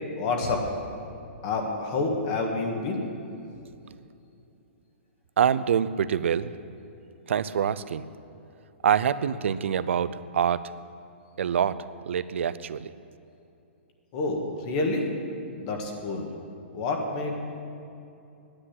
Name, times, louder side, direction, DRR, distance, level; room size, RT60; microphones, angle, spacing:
voice 1, 0.2-0.7 1.4-3.0 14.1-15.0 15.5-16.3 16.7-17.4, left 3 dB, 30° left, 2 dB, 1.7 m, -28 dB
voice 2, 5.4-6.5 7.3-8.1 8.8-10.6 11.4-12.9, right 8 dB, 75° right, 15 dB, 0.5 m, -25 dB
9.9 x 8.6 x 9.9 m, 2.7 s
hypercardioid pair, 165°, 7 cm